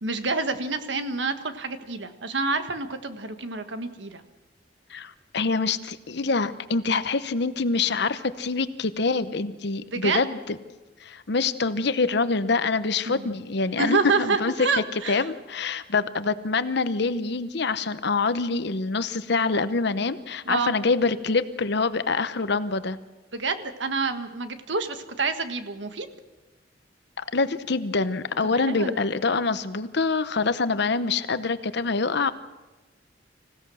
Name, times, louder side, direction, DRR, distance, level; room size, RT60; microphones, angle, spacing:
voice 1, 0.0-4.2 9.9-10.2 13.1-13.2 13.8-15.2 20.4-20.7 23.3-26.1 28.4-29.0, right 4 dB, 70° right, 8 dB, 1.5 m, -28 dB
voice 2, 4.9-10.6 11.0-14.5 15.1-23.0 27.2-32.3, left 4 dB, 65° left, 13 dB, 0.9 m, -25 dB
26.0 x 16.5 x 6.4 m, 1.2 s
head